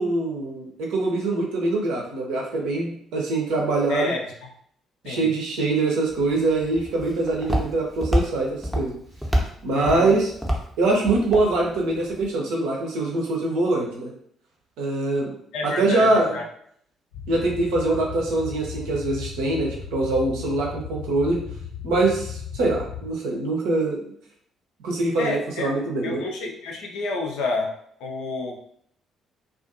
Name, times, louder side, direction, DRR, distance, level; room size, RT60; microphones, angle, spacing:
voice 1, 0.0-4.1 5.0-9.0 9.6-10.3 10.8-14.1 14.8-15.3 15.6-16.4 17.3-21.4 21.8-24.1 24.8-26.2, right 2 dB, 60° right, -1 dB, 0.6 m, -23 dB
voice 2, 3.9-4.5 5.0-5.3 9.7-10.1 15.5-16.4 25.2-25.7 26.0-27.7 28.0-28.6, left 3 dB, 60° left, 1 dB, 0.5 m, -29 dB
Walk footsteps, 6.1-12.3, equal, 5° right, 0.6 m, -29 dB
sound 1, 17.1-23.1, left 7 dB, 80° left, 0.9 m, -36 dB
2.4 x 2.4 x 2.5 m, 0.65 s
figure-of-eight pair, 45°, 0 cm